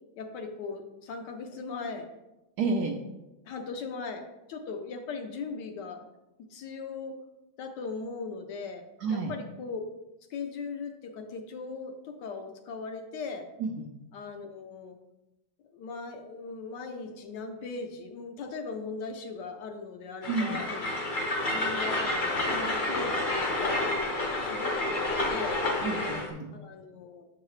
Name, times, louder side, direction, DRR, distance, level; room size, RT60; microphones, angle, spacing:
voice 1, 0.2-2.1 3.5-6.0 6.5-7.1 7.6-8.8 9.1-9.8 10.3-13.5 14.1-15.0 15.7-20.7 21.5-23.9 24.4-25.0 25.3-25.6 26.5-27.3, left 4 dB, 70° left, 5 dB, 1.2 m, -39 dB
voice 2, 2.6-3.0 9.0-9.3 13.6-13.8 20.3-20.6 25.8-26.6, right 4 dB, 70° right, 2 dB, 0.9 m, -30 dB
Train, 20.2-26.3, left 2 dB, 45° left, 0.6 m, -29 dB
7.2 x 4.7 x 3.1 m, 0.98 s
omnidirectional pair, 2.1 m